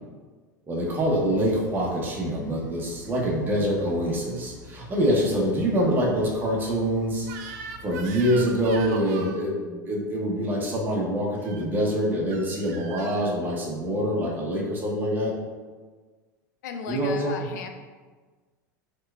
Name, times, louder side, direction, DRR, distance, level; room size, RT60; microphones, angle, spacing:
voice 1, 0.7-7.3 7.8-15.3 16.9-17.5, equal, 20° right, -3 dB, 0.7 m, -25 dB
sound 1, 0.8-8.8, equal, 85° left, 0.8 m, -48 dB
Crying sobbing / Screech, 7.2-9.4 11.3-11.7 12.3-13.3, right 5 dB, 60° right, 0.4 m, -40 dB
voice 2, 16.6-17.7, left 5 dB, 65° left, 5 dB, 0.4 m, -35 dB
4.3 x 2.3 x 2.2 m, 1.4 s
hypercardioid pair, 85°, 10 cm